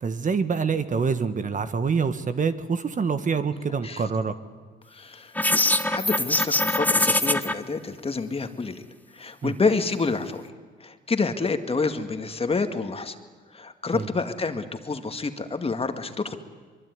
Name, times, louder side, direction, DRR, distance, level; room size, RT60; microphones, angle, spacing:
voice 1, 0.0-4.3 9.4-9.5 13.9-14.1, right 5 dB, 40° right, 10 dB, 1.6 m, -26 dB
voice 2, 4.9-8.8 9.1-10.5 10.8-13.2 13.5-16.4, left 4 dB, 30° left, 7 dB, 2.1 m, -28 dB
sound 1, 5.3-7.5, left 1 dB, 10° left, 1.3 m, -22 dB
23.5 x 23.0 x 9.6 m, 1.5 s
cardioid pair, 90°, 20 cm